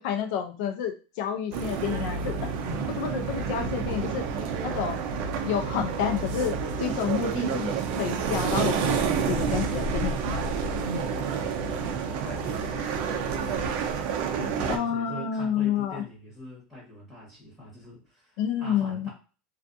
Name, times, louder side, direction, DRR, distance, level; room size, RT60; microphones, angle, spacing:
voice 1, 0.0-2.4 3.0-4.2 4.6-10.4 14.7-16.0 18.4-19.1, left 8 dB, 65° left, 6 dB, 0.5 m, -30 dB
sound 1, 1.5-14.8, right 6 dB, 50° right, 0.4 m, -29 dB
voice 2, 2.6-3.1 4.3-4.5 10.8-19.1, left 1 dB, 5° left, -6 dB, 1.2 m, -43 dB
2.4 x 2.3 x 2.6 m, 0.35 s
supercardioid pair, 145°, 5 cm